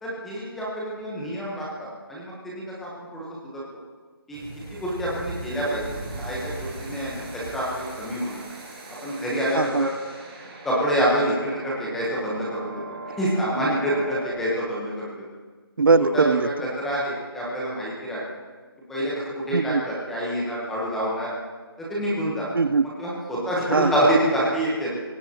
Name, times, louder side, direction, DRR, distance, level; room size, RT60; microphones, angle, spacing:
voice 1, 0.0-3.6 4.3-4.4 4.7-7.2 7.5-8.4 9.0-9.9 10.6-12.8 13.2-15.2 16.1-16.2 16.8-18.2 18.9-21.3 21.8-22.6 23.0-24.9, equal, ahead, -6 dB, 0.9 m, -27 dB
sound 1, 4.3-14.3, right 2 dB, 20° right, 3.6 m, -39 dB
voice 2, 9.5-9.9 15.8-16.7 19.5-19.8 22.5-22.9 23.7-23.9, right 4 dB, 60° right, 15 dB, 0.5 m, -20 dB
26.0 x 17.0 x 2.9 m, 1.4 s
hypercardioid pair, 180°, 13 cm